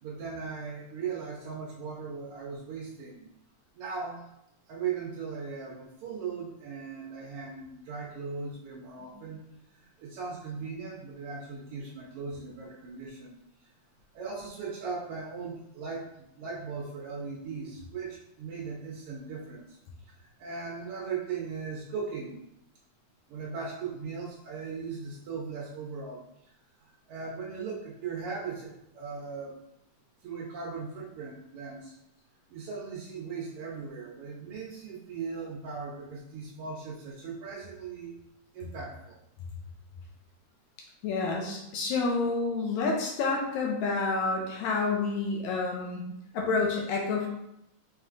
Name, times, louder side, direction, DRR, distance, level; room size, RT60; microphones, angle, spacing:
voice 1, 0.0-3.3 3.7-4.2 4.7-9.4 10.0-13.4 14.1-19.8 20.2-22.4 23.3-26.2 26.8-29.6 30.2-31.9 32.5-38.2 38.5-39.2, right 5 dB, 85° right, -3 dB, 1.2 m, -38 dB
voice 2, 41.0-46.0 46.3-47.3, left 3 dB, 80° left, -1 dB, 1.9 m, -29 dB
5.1 x 3.2 x 2.4 m, 0.81 s
omnidirectional pair, 3.4 m